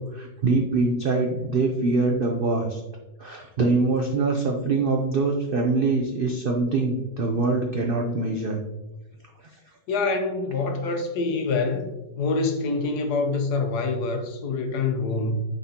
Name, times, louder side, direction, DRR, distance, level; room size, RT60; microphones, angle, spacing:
voice 1, 0.0-2.8 3.2-8.6 9.5-9.6, right 3 dB, 85° right, 0.4 m, -24 dB
voice 2, 9.9-15.4, left 3 dB, 70° left, 1.3 m, -26 dB
9.2 x 4.1 x 2.8 m
omnidirectional pair, 1.9 m